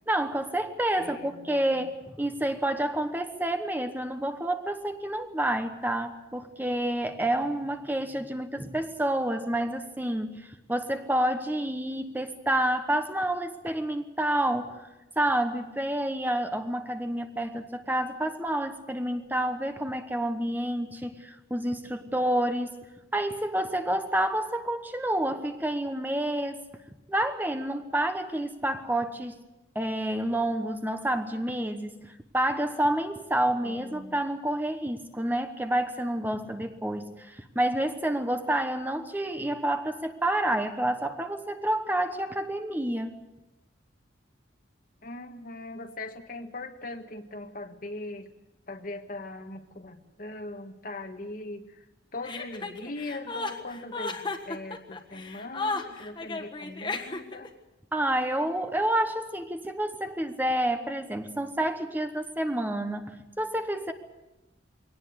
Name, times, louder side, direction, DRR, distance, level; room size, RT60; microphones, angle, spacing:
voice 1, 0.1-14.9 15.2-22.8 23.1-26.6 27.1-29.4 29.7-43.1 57.9-63.9, right 1 dB, 10° right, 7 dB, 1.1 m, -29 dB
voice 2, 1.0-1.9 33.6-34.2 45.0-48.3 48.7-51.9 52.1-57.5, left 2 dB, 50° left, 7 dB, 1.5 m, -40 dB
Chuckle chortle, 52.2-57.5, left 3 dB, 25° left, 1.6 m, -34 dB
22.5 x 18.5 x 8.1 m, 1.0 s
head